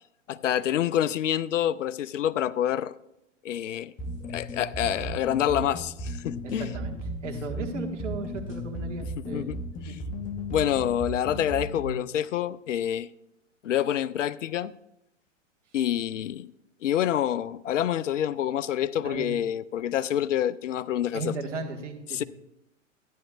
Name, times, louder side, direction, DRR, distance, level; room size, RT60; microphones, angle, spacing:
voice 1, 0.3-2.9 3.4-3.9 4.3-6.7 9.2-9.6 9.8-10.0 10.5-13.1 13.6-14.7 15.7-16.5 16.8-21.3 22.1-22.2, left 10 dB, 70° left, 0.5 m, -27 dB
sound 1, 4.0-12.0, equal, 20° left, 0.9 m, -35 dB
voice 2, 6.4-7.0 7.2-9.5 9.9-10.0 19.0-19.3 21.1-22.2, right 3 dB, 65° right, 1.6 m, -35 dB
13.0 x 10.0 x 2.4 m
figure-of-eight pair, 105°, 38 cm